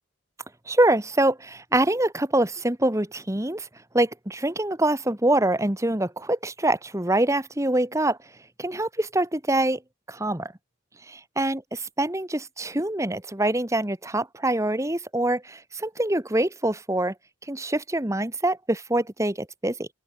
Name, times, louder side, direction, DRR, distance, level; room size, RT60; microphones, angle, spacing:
voice 1, 0.7-3.7 3.9-8.2 8.6-9.8 10.1-10.5 11.1-17.1 17.5-19.9, right 1 dB, 15° right, 1.4 m, -25 dB
open air
head